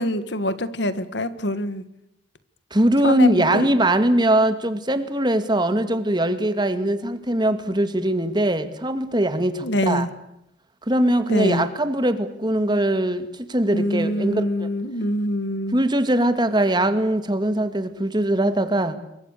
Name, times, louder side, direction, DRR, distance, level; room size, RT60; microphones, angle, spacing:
voice 1, 0.0-1.8 3.0-3.8 9.6-10.1 11.3-11.7 13.7-15.8, left 1 dB, 70° left, 13 dB, 1.9 m, -25 dB
voice 2, 2.7-10.1 10.9-14.7 15.7-18.9, right 1 dB, 25° right, 10 dB, 2.2 m, -21 dB
28.0 x 23.5 x 6.8 m, 0.81 s
head